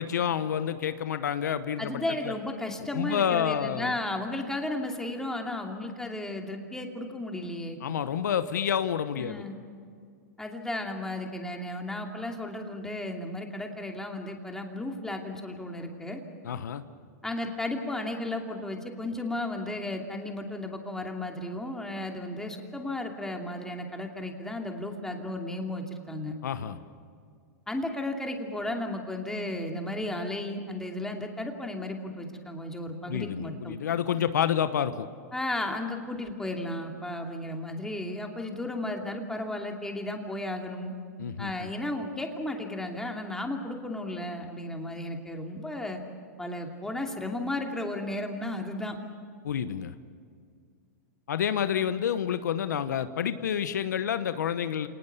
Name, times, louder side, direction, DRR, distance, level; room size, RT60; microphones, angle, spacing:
voice 1, 0.0-2.3 2.9-4.0 7.8-9.4 16.4-16.8 26.4-26.8 33.1-35.1 41.2-41.7 49.4-49.9 51.3-54.9, left 9 dB, 85° left, 11 dB, 1.1 m, -29 dB
voice 2, 1.8-7.8 9.2-9.6 10.4-16.2 17.2-26.4 27.7-33.8 35.3-40.9 41.4-46.0 46.4-49.0, left 1 dB, 5° left, 2 dB, 2.7 m, -34 dB
28.0 x 19.0 x 6.9 m, 2.2 s
hypercardioid pair, 125°, 9 cm